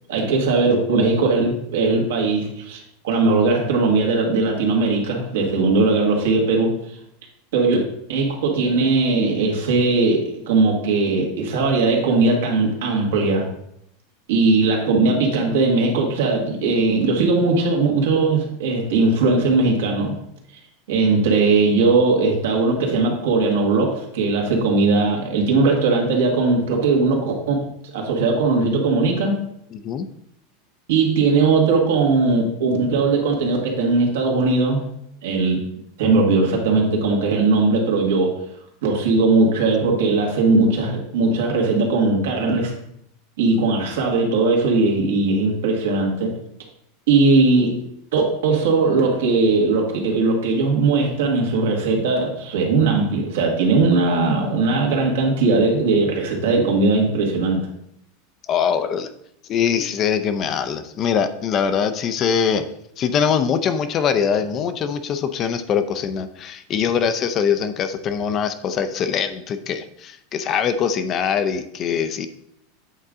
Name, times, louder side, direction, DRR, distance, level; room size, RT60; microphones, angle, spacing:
voice 1, 0.1-2.8 3.0-6.8 7.5-7.8 8.1-13.5 14.3-20.2 20.9-29.4 30.9-34.8 35.2-35.6 36.0-38.4 38.8-42.7 43.4-46.3 47.1-47.9 48.1-57.7, right 3 dB, 85° right, 1 dB, 1.7 m, -19 dB
voice 2, 29.7-30.1 58.5-59.1 59.5-62.7 63.0-72.3, left 7 dB, 35° left, 11 dB, 0.5 m, -22 dB
8.3 x 3.8 x 3.6 m, 0.75 s
supercardioid pair, 140°, 0 cm